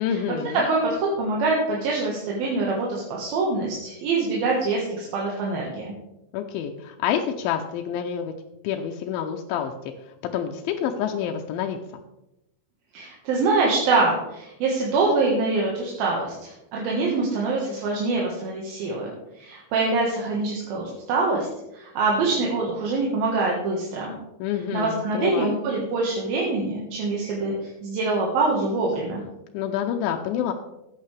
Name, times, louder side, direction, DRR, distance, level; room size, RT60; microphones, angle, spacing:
voice 1, 0.0-0.6 6.3-8.3 8.6-9.7 10.3-11.8 24.4-25.5 29.5-30.5, left 9 dB, 85° left, 3 dB, 2.4 m, -27 dB
voice 2, 0.7-5.9 12.9-21.5 21.7-24.1 24.7-29.2, right 3 dB, 85° right, -3 dB, 3.4 m, -25 dB
13.5 x 9.3 x 3.4 m, 0.89 s
omnidirectional pair, 4.1 m